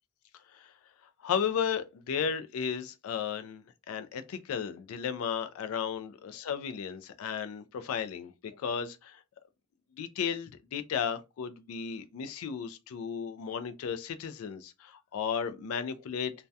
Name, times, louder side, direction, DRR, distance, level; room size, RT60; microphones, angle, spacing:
voice 1, 1.2-9.2 10.0-16.3, left 7 dB, 65° left, 0.3 m, -34 dB
2.3 x 2.1 x 2.6 m
head